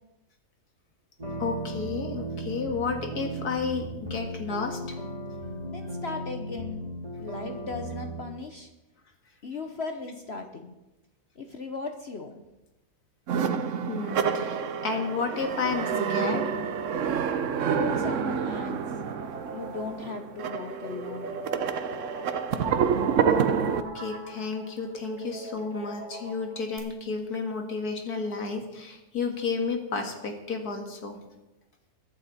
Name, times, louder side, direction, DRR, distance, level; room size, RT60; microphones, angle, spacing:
sound 1, 1.2-8.2, right 1 dB, 25° right, 2.2 m, -36 dB
voice 1, 1.4-5.0 13.9-16.5 23.7-31.2, left 4 dB, 70° left, 3 dB, 2.3 m, -32 dB
voice 2, 5.7-6.8 7.2-8.7 9.4-10.7 11.4-12.4 17.5-18.8 19.5-21.6, left 4 dB, 45° left, 5 dB, 1.0 m, -37 dB
sound 2, 13.3-23.8, right 7 dB, 60° right, 0.9 m, -28 dB
sound 3, 18.8-26.8, right 2 dB, 10° right, 2.4 m, -41 dB
22.5 x 8.9 x 4.2 m, 1.0 s
omnidirectional pair, 1.7 m